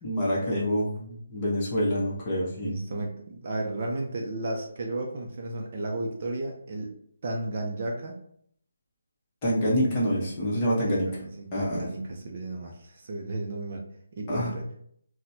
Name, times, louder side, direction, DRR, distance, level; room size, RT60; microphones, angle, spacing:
voice 1, 0.0-2.8 9.4-11.0 11.5-11.9 14.3-14.5, equal, 20° left, -5 dB, 0.8 m, -26 dB
voice 2, 2.6-7.0 7.2-8.2 10.9-13.8 14.1-14.7, right 2 dB, 35° right, 1 dB, 0.5 m, -33 dB
4.1 x 2.1 x 2.7 m, 0.66 s
hypercardioid pair, 170°, 0 cm